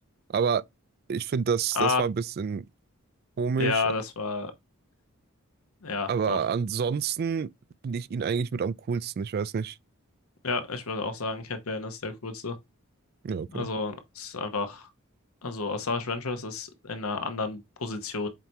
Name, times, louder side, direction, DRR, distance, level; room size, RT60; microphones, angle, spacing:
voice 1, 0.3-0.6 1.1-2.6 3.4-3.8 6.1-7.5 7.8-9.8 13.2-13.7, right 6 dB, 45° right, 0.3 m, -28 dB
voice 2, 3.6-4.5 5.8-6.4 10.4-12.5 13.5-14.9 15.4-18.3, left 4 dB, 80° left, 1.1 m, -31 dB
7.4 x 2.8 x 4.6 m
head